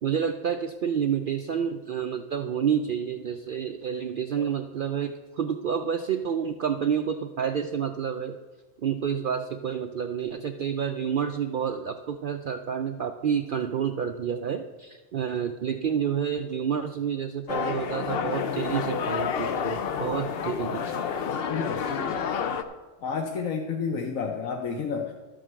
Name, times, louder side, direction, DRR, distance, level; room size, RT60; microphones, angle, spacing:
voice 1, 0.0-8.4 8.8-21.0, right 8 dB, 65° right, 6 dB, 0.5 m, -29 dB
sound 1, 17.5-22.6, left 6 dB, 55° left, 0.7 m, -29 dB
voice 2, 21.5-22.2 23.0-25.1, left 5 dB, 80° left, 3 dB, 1.2 m, -31 dB
12.0 x 5.1 x 7.5 m, 1.2 s
omnidirectional pair, 1.4 m